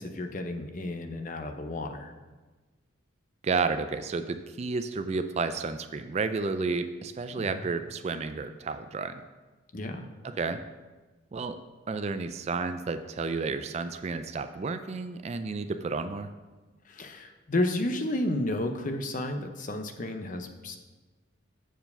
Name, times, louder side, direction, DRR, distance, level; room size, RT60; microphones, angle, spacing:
voice 1, 0.0-2.1 7.3-7.7 9.7-10.1 16.9-20.8, left 1 dB, 40° left, 5 dB, 0.7 m, -32 dB
voice 2, 3.4-9.2 10.2-10.6 11.3-11.6 11.9-16.3, right 4 dB, 35° right, 10 dB, 0.3 m, -31 dB
7.5 x 4.7 x 6.7 m, 1.3 s
head